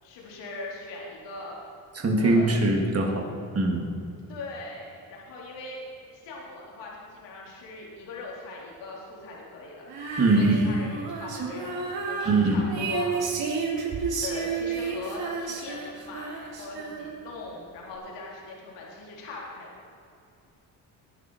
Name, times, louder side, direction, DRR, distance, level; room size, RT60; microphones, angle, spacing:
voice 1, 0.0-1.6 2.2-2.6 4.3-9.9 10.4-11.7 12.1-13.2 14.2-19.7, left 3 dB, 85° left, -3 dB, 3.9 m, -40 dB
voice 2, 1.9-3.3 3.5-3.9 10.2-10.7 12.2-12.6, right 2 dB, 35° right, 0 dB, 3.2 m, -22 dB
Female singing, 9.9-17.4, right 4 dB, 60° right, 3.7 m, -31 dB
21.0 x 11.5 x 4.9 m, 2.6 s
cardioid pair, 100°, 42 cm